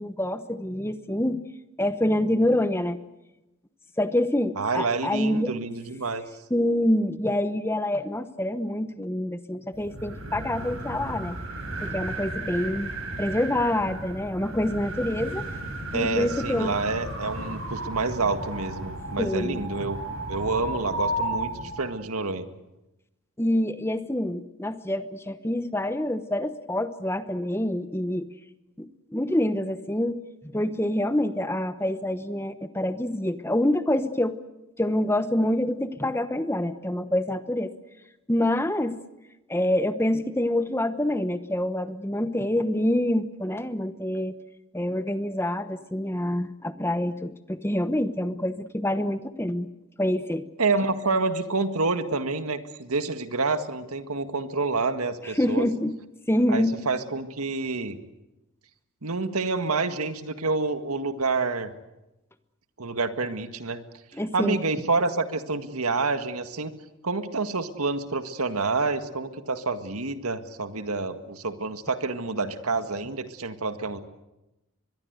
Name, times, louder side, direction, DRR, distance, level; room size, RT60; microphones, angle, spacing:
voice 1, 0.0-1.4 1.8-3.0 4.0-5.5 6.5-11.4 11.8-12.9 13.2-15.4 15.9-16.8 19.2-19.6 23.4-28.3 28.8-34.4 34.8-37.7 38.3-39.0 39.5-44.4 44.7-49.7 50.0-50.4 55.2-55.9 56.3-56.7 64.1-64.6, left 1 dB, 10° left, 11 dB, 1.0 m, -26 dB
voice 2, 4.6-6.2 15.9-20.0 20.3-22.5 50.6-55.6 56.5-58.0 59.0-61.7 62.8-63.8 64.1-66.7 67.0-74.0, right 3 dB, 85° right, 9 dB, 1.8 m, -28 dB
sound 1, 9.7-21.9, right 1 dB, 65° right, 8.0 m, -34 dB
23.5 x 22.0 x 8.1 m, 0.97 s
head